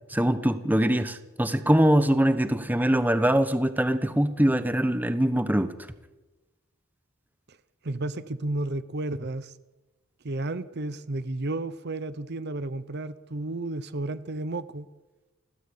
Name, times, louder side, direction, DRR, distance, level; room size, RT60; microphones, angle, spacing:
voice 1, 0.1-5.7, right 1 dB, 10° right, 11 dB, 1.1 m, -23 dB
voice 2, 7.8-9.5 10.2-14.9, right 2 dB, 55° right, 14 dB, 0.8 m, -32 dB
30.0 x 13.5 x 8.5 m, 1.1 s
head